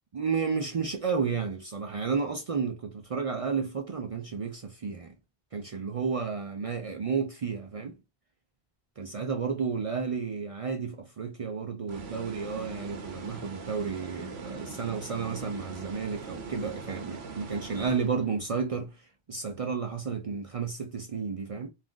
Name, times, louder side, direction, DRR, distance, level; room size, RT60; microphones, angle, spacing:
voice 1, 0.1-5.1 5.5-8.0 9.0-21.7, right 5 dB, 50° right, 0.4 m, -32 dB
sound 1, 11.9-18.5, right 4 dB, 90° right, 1.0 m, -42 dB
2.5 x 2.4 x 3.5 m
omnidirectional pair, 1.0 m